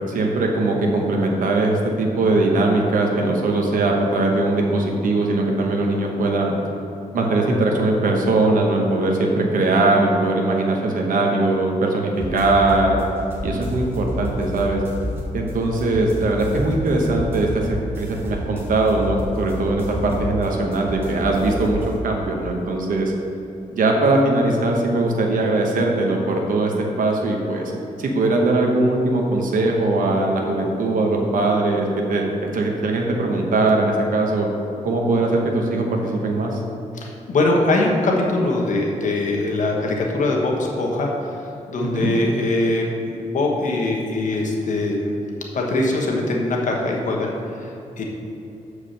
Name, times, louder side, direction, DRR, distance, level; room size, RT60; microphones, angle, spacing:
voice 1, 0.1-6.6 7.1-13.0 13.4-14.8 15.3-23.1 23.7-27.7 28.0-32.3 32.5-34.5 34.8-36.6 41.8-42.1, right 2 dB, 75° right, 1 dB, 1.0 m, -20 dB
sound 1, 12.1-22.0, equal, 15° right, 1.7 m, -30 dB
voice 2, 36.9-41.4 41.7-45.1 45.5-48.0, left 2 dB, 65° left, -1 dB, 1.2 m, -22 dB
7.2 x 4.8 x 6.4 m, 2.9 s
wide cardioid pair, 120°, 14 cm